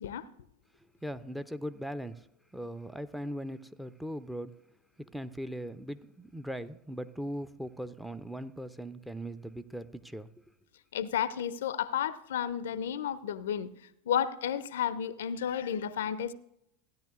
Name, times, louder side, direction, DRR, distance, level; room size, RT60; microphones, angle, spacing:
voice 1, 1.0-2.2 2.5-4.5 5.0-10.3, equal, ahead, 0.6 m, -39 dB
voice 2, 10.9-13.7 14.1-16.3, left 9 dB, 70° left, 0.5 m, -32 dB
16.5 x 10.5 x 2.4 m
figure-of-eight pair, 85°, 0 cm